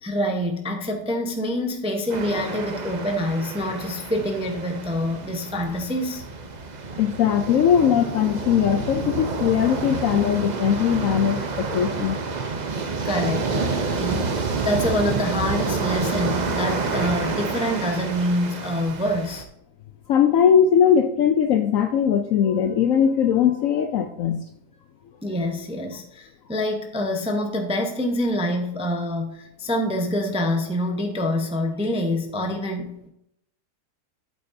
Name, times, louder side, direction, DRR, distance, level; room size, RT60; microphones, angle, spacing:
voice 1, 0.0-6.2 13.0-19.4 25.2-33.1, left 1 dB, 5° right, 3 dB, 0.5 m, -26 dB
sound 1, 2.1-19.4, right 4 dB, 85° right, 0.3 m, -29 dB
voice 2, 7.0-12.4 20.1-24.4, left 8 dB, 70° left, 7 dB, 0.8 m, -20 dB
8.5 x 8.3 x 2.7 m, 0.78 s
omnidirectional pair, 1.8 m